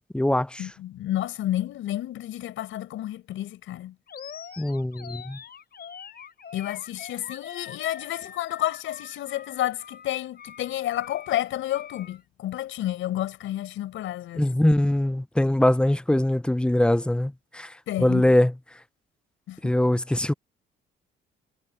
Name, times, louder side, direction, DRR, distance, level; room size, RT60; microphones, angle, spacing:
voice 1, 0.0-0.6 4.6-5.4 14.4-17.7 18.0-18.5 19.6-20.3, left 1 dB, 5° left, 0.5 m, -22 dB
voice 2, 0.6-4.0 6.5-14.5 17.9-18.3 19.5-19.7, left 13 dB, 85° left, 5.1 m, -30 dB
Animal, 4.1-12.2, left 7 dB, 50° left, 7.7 m, -44 dB
cardioid pair, 90°, 20 cm